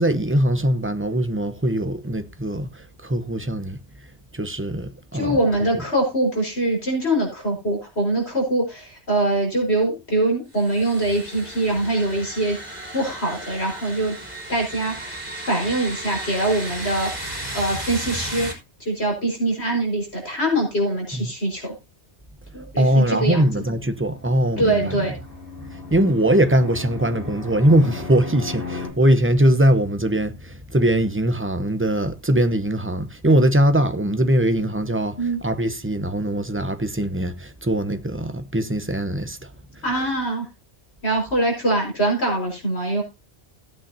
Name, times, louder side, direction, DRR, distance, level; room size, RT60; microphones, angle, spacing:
voice 1, 0.0-3.8 4.3-5.4 21.2-21.3 22.8-25.0 25.9-35.2 35.4-39.5, right 1 dB, 10° right, 0.8 m, -21 dB
voice 2, 5.1-12.6 12.9-14.1 14.5-17.3 17.5-18.5 18.8-21.7 22.5-23.5 24.6-25.1 35.2-35.4 39.8-40.5 41.0-43.0, right 1 dB, 70° left, 5.3 m, -23 dB
sound 1, 10.5-18.5, right 1 dB, 40° right, 4.4 m, -34 dB
Fixed-wing aircraft airplane, 24.0-28.9, left 4 dB, 50° left, 3.4 m, -36 dB
17.0 x 8.9 x 2.8 m
omnidirectional pair, 1.1 m